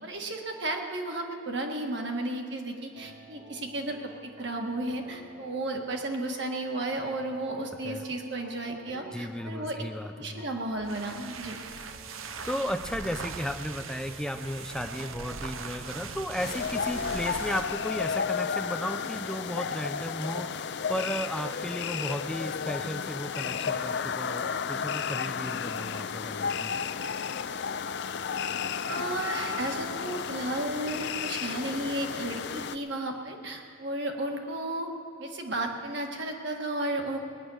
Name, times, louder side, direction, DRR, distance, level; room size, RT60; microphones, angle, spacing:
voice 1, 0.0-9.7 10.2-11.6 28.8-34.9 35.2-37.2, right 2 dB, 55° right, 2 dB, 1.7 m, -33 dB
sound 1, 2.9-19.8, right 1 dB, 35° right, 1.6 m, -51 dB
voice 2, 9.1-10.4 12.2-26.8, equal, 5° left, 6 dB, 0.6 m, -35 dB
sound 2, 10.7-17.7, right 5 dB, 85° right, 0.8 m, -40 dB
sound 3, 16.4-32.8, left 6 dB, 55° left, 0.5 m, -33 dB
19.5 x 10.0 x 6.4 m, 2.8 s
head